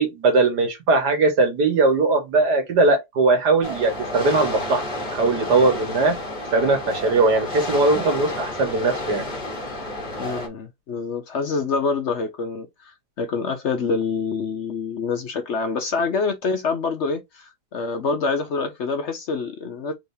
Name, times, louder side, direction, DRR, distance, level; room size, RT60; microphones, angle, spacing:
voice 1, 0.0-4.8 5.1-6.1 6.5-9.2, right 3 dB, 85° right, 2.0 m, -20 dB
sound 1, 3.6-10.5, left 1 dB, 30° left, 1.2 m, -31 dB
voice 2, 10.2-19.9, left 4 dB, 60° left, 0.8 m, -26 dB
3.9 x 3.4 x 2.7 m
omnidirectional pair, 1.7 m